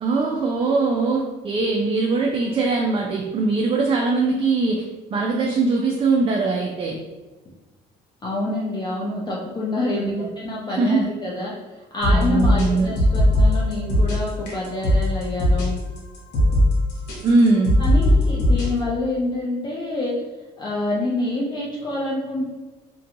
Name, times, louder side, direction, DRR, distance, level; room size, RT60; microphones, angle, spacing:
voice 1, 0.0-4.8 5.1-7.0 10.0-10.3 10.7-11.1 12.1-12.9 17.2-17.8, right 3 dB, 35° right, -1 dB, 0.4 m, -21 dB
voice 2, 8.2-11.5 11.9-15.8 17.8-20.1 20.6-22.5, left 2 dB, 25° left, -5 dB, 0.5 m, -27 dB
sound 1, 12.0-18.7, left 1 dB, 85° left, 0.9 m, -18 dB
2.4 x 2.2 x 2.8 m, 1.2 s
cardioid pair, 110°, 17 cm